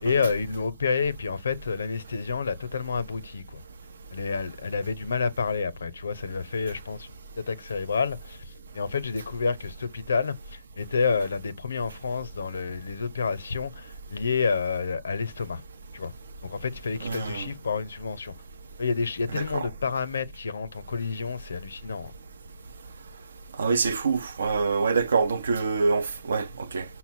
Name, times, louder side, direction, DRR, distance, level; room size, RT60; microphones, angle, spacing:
voice 1, 0.0-3.6 4.1-7.1 7.4-8.4 8.7-15.6 15.9-16.1 16.4-18.3 18.8-22.1, left 5 dB, 75° left, 0.6 m, -29 dB
voice 2, 17.0-17.5 19.3-19.7 23.6-26.9, right 4 dB, 70° right, 0.6 m, -26 dB
5.7 x 2.1 x 4.2 m
figure-of-eight pair, 125°, 0 cm